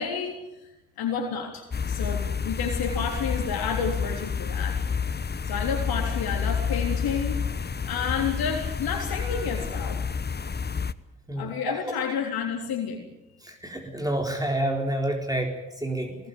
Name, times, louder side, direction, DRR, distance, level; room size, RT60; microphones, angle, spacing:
voice 1, 0.0-4.8 5.5-10.0 11.4-13.1, left 6 dB, 65° left, 2 dB, 3.7 m, -30 dB
sound 1, 1.7-10.9, left 6 dB, 25° left, 1.1 m, -29 dB
voice 2, 11.3-11.9 13.4-16.2, right 1 dB, 10° right, 2 dB, 4.2 m, -29 dB
22.0 x 19.5 x 9.4 m, 0.96 s
hypercardioid pair, 45°, 39 cm